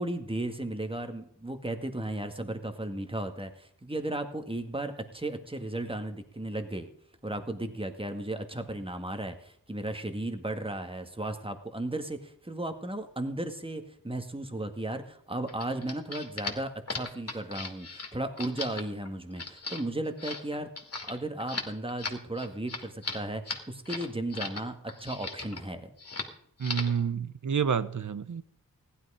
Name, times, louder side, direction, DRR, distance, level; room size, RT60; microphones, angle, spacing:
voice 1, 0.0-6.9 7.2-20.7 21.1-25.9, right 1 dB, 15° right, 1.9 m, -35 dB
sound 1, 15.5-24.6 24.9-25.6 26.0-26.3 26.6-27.0, left 3 dB, 45° left, 2.6 m, -38 dB
voice 2, 26.6-28.4, right 7 dB, 55° right, 1.0 m, -29 dB
15.5 x 11.5 x 5.0 m
cardioid pair, 50°, 35 cm